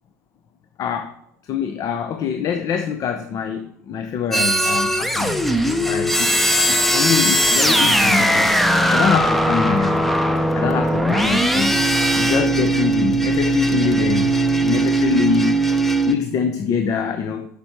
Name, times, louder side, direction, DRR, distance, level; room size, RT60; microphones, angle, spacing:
voice 1, 0.8-1.1 1.5-5.4 5.9-6.4 6.7-8.6 8.9-10.0 10.5-11.8 12.1-14.3 14.6-15.6 16.1-17.5, left 7 dB, 40° left, 7 dB, 0.8 m, -24 dB
sound 1, 4.3-16.1, right 1 dB, ahead, 0.8 m, -19 dB
7.0 x 6.9 x 4.6 m, 0.70 s
hypercardioid pair, 80°, 9 cm